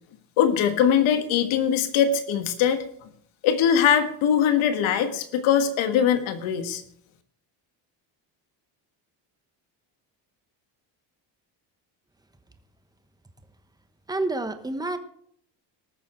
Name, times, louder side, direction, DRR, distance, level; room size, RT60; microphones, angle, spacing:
voice 1, 0.4-3.1 3.4-6.8, left 8 dB, 85° left, 9 dB, 1.6 m, -22 dB
voice 2, 14.1-15.0, right 2 dB, 10° right, 9 dB, 1.0 m, -28 dB
19.5 x 6.8 x 4.4 m, 0.65 s
cardioid pair, 120°, 46 cm